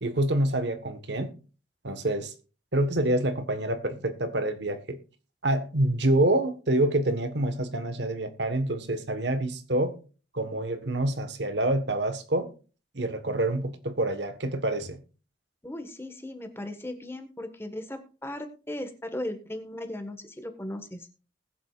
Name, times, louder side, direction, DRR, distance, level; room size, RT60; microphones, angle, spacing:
voice 1, 0.0-1.3 1.8-2.3 2.7-5.0 5.4-10.0 10.3-12.5 12.9-15.0, right 1 dB, 70° right, 1.4 m, -27 dB
voice 2, 15.6-21.1, left 1 dB, 15° left, 1.4 m, -37 dB
20.0 x 7.6 x 2.4 m
head